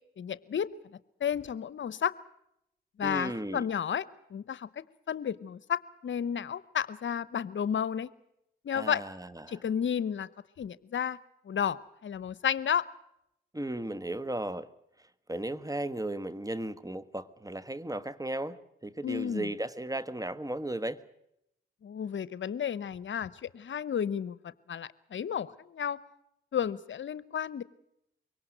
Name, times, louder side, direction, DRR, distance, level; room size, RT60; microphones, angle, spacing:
voice 1, 0.2-0.7 1.2-2.1 3.0-4.0 4.3-4.7 5.1-8.1 8.6-9.0 9.5-10.3 10.6-11.2 11.5-12.9 19.0-19.5 21.8-26.0 26.5-27.6, left 8 dB, 65° left, 0.8 m, -32 dB
voice 2, 3.0-3.7 8.7-9.6 13.5-14.7 15.0-21.0, right 1 dB, 15° right, 1.4 m, -36 dB
23.5 x 18.0 x 7.8 m
supercardioid pair, 50°, 21 cm